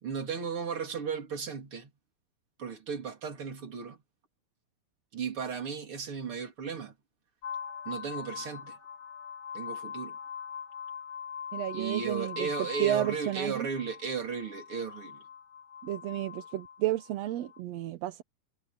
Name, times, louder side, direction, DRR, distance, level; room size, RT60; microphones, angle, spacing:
voice 1, 0.0-1.9 2.6-4.0 5.1-6.9 7.9-8.8 9.5-10.2 11.7-15.2, right 6 dB, 45° right, 3.9 m, -35 dB
sound 1, 7.4-17.6, left 7 dB, 55° left, 5.5 m, -42 dB
voice 2, 11.5-12.5 12.8-13.7 15.8-18.2, right 13 dB, 70° right, 1.8 m, -32 dB
omnidirectional pair, 3.5 m